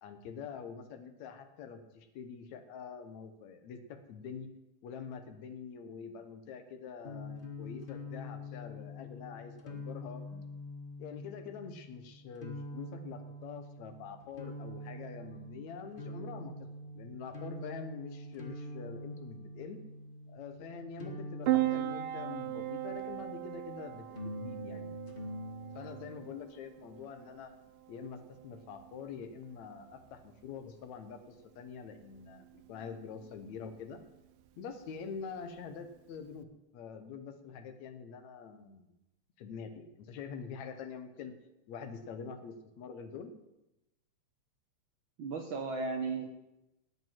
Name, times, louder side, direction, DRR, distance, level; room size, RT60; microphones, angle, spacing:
voice 1, 0.0-4.5 4.8-10.2 11.0-16.5 16.9-19.8 20.3-24.9 25.8-27.5 27.9-34.0 34.6-36.5 36.7-38.9 39.4-41.3 41.7-43.3, left 6 dB, 70° left, 7 dB, 2.4 m, -45 dB
sound 1, 7.0-23.3 24.1-26.1, left 1 dB, 40° left, 0.7 m, -45 dB
Piano, 21.4-36.4, right 15 dB, 85° right, 1.2 m, -39 dB
voice 2, 45.2-46.3, right 4 dB, 60° right, 4 dB, 1.3 m, -35 dB
9.4 x 8.8 x 9.0 m, 0.94 s
omnidirectional pair, 3.4 m